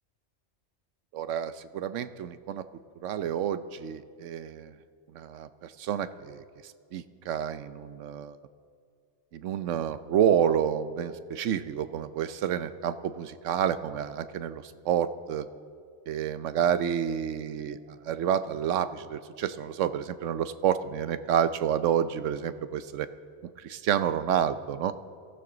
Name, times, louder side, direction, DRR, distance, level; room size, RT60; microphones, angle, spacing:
voice 1, 1.1-2.6 3.0-4.7 5.1-8.4 9.3-15.5 16.1-23.1 23.4-24.9, right 9 dB, 90° right, 13 dB, 1.0 m, -29 dB
22.0 x 14.5 x 3.9 m, 2.2 s
omnidirectional pair, 1.2 m